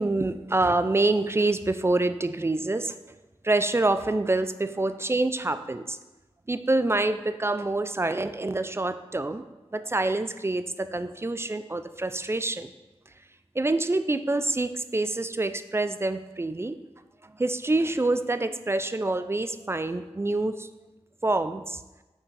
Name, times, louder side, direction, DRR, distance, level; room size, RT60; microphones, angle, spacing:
voice 1, 0.0-3.0 3.4-6.0 6.5-9.4 9.7-12.7 13.6-16.8 17.2-20.7 21.2-21.8, right 2 dB, 25° right, 11 dB, 0.3 m, -26 dB
5.9 x 4.9 x 3.3 m, 1.1 s
cardioid pair, 40°, 11 cm